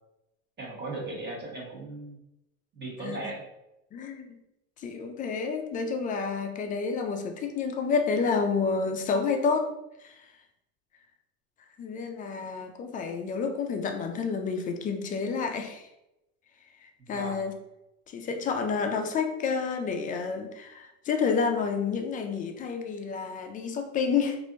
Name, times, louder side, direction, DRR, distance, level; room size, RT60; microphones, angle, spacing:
voice 1, 0.6-2.2 2.7-3.4 17.0-17.5, right 2 dB, 25° right, -3 dB, 1.3 m, -37 dB
voice 2, 3.9-4.4 4.8-9.7 10.0-10.2 11.8-15.9 16.8-17.5 18.1-24.4, left 5 dB, 20° left, 5 dB, 0.3 m, -29 dB
3.2 x 2.6 x 2.6 m, 0.90 s
hypercardioid pair, 95°, 40 cm